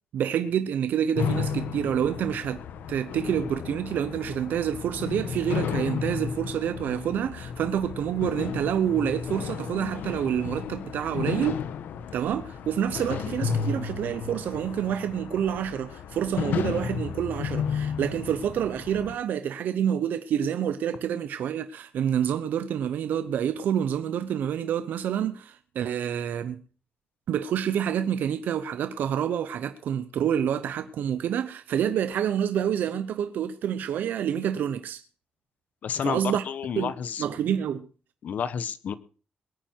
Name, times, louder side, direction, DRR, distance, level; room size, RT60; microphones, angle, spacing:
voice 1, 0.1-2.6 2.9-11.6 12.1-26.6 27.3-35.0 36.0-36.4 36.8-36.9 37.2-37.9, right 9 dB, 80° right, 0.8 m, -28 dB
sound 1, 1.2-19.1, left 6 dB, 85° left, 1.1 m, -33 dB
voice 2, 35.8-37.2 38.2-38.9, left 7 dB, 60° left, 1.0 m, -30 dB
21.5 x 9.2 x 4.6 m
wide cardioid pair, 150°, 3 cm